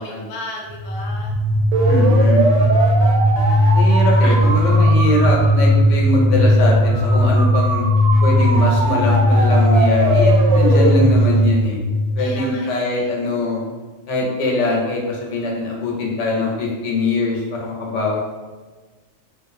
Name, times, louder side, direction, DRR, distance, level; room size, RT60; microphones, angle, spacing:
voice 1, 0.0-1.4 4.1-4.6 11.1-11.5 12.2-13.1, left 2 dB, 60° left, -1 dB, 0.6 m, -35 dB
sound 1, 0.7-12.5, equal, 85° right, 0.9 m, -16 dB
voice 2, 1.9-2.5 3.7-7.8 8.2-11.8 12.2-13.6 14.1-18.2, left 2 dB, 85° left, -1 dB, 1.0 m, -22 dB
2.5 x 2.3 x 2.5 m, 1.3 s
omnidirectional pair, 1.2 m